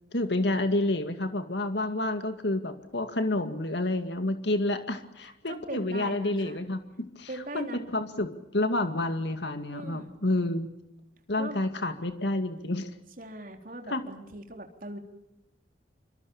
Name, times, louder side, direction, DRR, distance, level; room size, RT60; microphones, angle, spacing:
voice 1, 0.1-7.3 7.5-10.7 11.3-12.9 13.9-14.0, left 2 dB, 70° left, 8 dB, 2.2 m, -29 dB
voice 2, 5.5-6.6 7.3-7.8 9.7-10.2 11.4-11.6 13.2-15.0, right 1 dB, 45° right, 5 dB, 3.7 m, -40 dB
26.5 x 26.0 x 7.2 m, 0.86 s
head